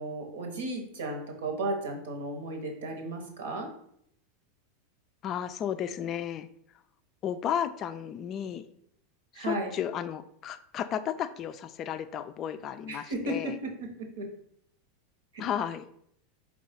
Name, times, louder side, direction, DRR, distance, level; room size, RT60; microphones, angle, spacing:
voice 1, 0.0-3.7 9.3-9.7 12.9-14.3 15.3-15.4, right 2 dB, 75° right, 2 dB, 1.0 m, -34 dB
voice 2, 5.2-6.5 7.2-8.6 9.4-13.5 15.4-15.8, left 9 dB, 40° left, 11 dB, 0.3 m, -33 dB
4.5 x 2.3 x 4.2 m, 0.70 s
hypercardioid pair, 90°, 0 cm